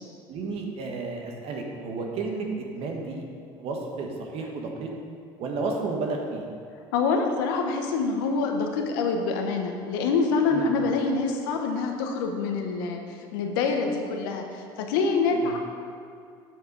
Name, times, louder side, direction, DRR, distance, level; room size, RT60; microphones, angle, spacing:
voice 1, 0.3-3.2 3.6-4.9 5.4-6.4 10.5-10.7 15.3-15.6, right 3 dB, 60° right, 1 dB, 1.5 m, -32 dB
voice 2, 6.9-13.0 13.3-15.6, left 4 dB, 85° left, 3 dB, 0.9 m, -26 dB
7.3 x 6.0 x 5.2 m, 2.3 s
supercardioid pair, 90°, 12 cm